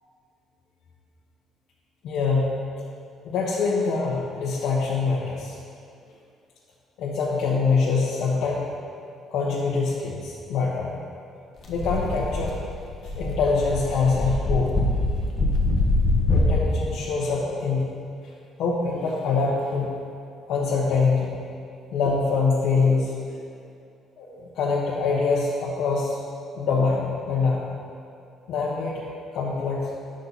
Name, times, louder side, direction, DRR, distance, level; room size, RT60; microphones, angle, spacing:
voice 1, 2.0-2.5 3.2-5.6 7.0-8.9 9.3-11.0 11.7-12.6 13.0-14.7 16.3-17.9 18.2-18.3 18.6-19.9 20.5-21.4 21.9-23.4 24.2-26.2 26.5-27.7 28.5-29.0 29.3-29.9, left 4 dB, 70° left, -6 dB, 1.2 m, -24 dB
sound 1, 11.6-16.6, left 2 dB, 35° left, 1.2 m, -24 dB
10.5 x 6.4 x 4.2 m, 2.4 s
cardioid pair, 145°, 0 cm